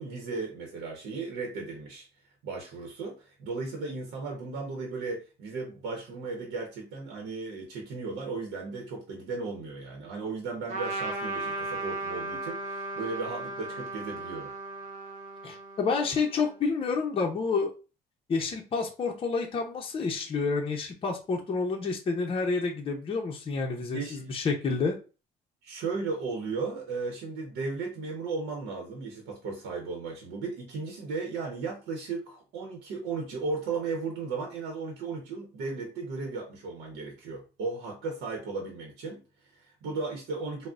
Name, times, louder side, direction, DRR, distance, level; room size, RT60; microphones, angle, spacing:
voice 1, 0.0-2.1 2.4-14.5 23.8-24.3 25.6-40.7, right 4 dB, 85° right, 1 dB, 0.8 m, -35 dB
Trumpet, 10.7-16.6, right 2 dB, 50° right, 0.9 m, -36 dB
voice 2, 15.4-17.7 18.3-24.9, left 4 dB, 30° left, 1 dB, 0.6 m, -29 dB
3.7 x 2.1 x 2.4 m, 0.33 s
cardioid pair, 110°, 17 cm